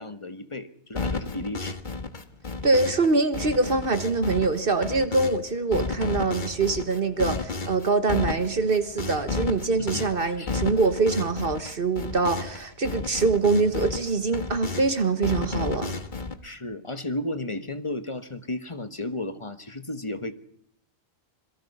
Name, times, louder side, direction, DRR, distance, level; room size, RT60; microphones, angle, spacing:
voice 1, 0.0-1.8 9.8-10.0 10.4-10.6 16.4-20.3, left 2 dB, 30° left, 11 dB, 1.5 m, -34 dB
sound 1, 1.0-3.1 3.3-5.4 5.7-12.6 12.8-14.9 15.2-16.4, left 3 dB, 45° left, 1.6 m, -32 dB
voice 2, 2.6-16.0, right 3 dB, 55° right, 11 dB, 1.5 m, -24 dB
26.5 x 22.5 x 5.6 m, 0.69 s
omnidirectional pair, 1.1 m